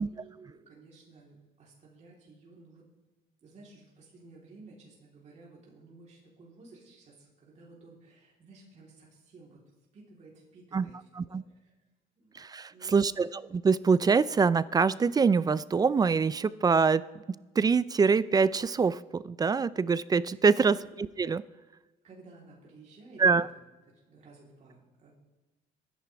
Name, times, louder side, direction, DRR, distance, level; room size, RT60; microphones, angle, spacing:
voice 1, 0.0-2.9 3.4-9.6 9.9-11.7 12.2-12.4 12.7-13.1 20.5-20.9 22.0-23.6 23.9-25.1, right 3 dB, 45° right, -4 dB, 3.6 m, -54 dB
voice 2, 12.3-13.3 13.5-20.8 21.2-21.4 23.2-23.5, right 5 dB, 25° right, 18 dB, 0.4 m, -25 dB
23.0 x 10.5 x 3.4 m, 1.2 s
cardioid pair, 110°, 17 cm